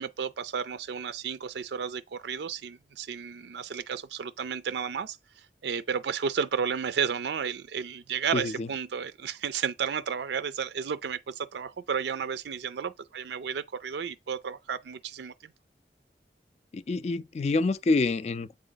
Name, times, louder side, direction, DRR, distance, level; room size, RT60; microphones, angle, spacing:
voice 1, 0.0-15.3, right 7 dB, 75° right, 0.4 m, -32 dB
voice 2, 8.3-8.7 16.7-18.5, left 3 dB, 35° left, 0.3 m, -27 dB
7.9 x 3.7 x 3.9 m
head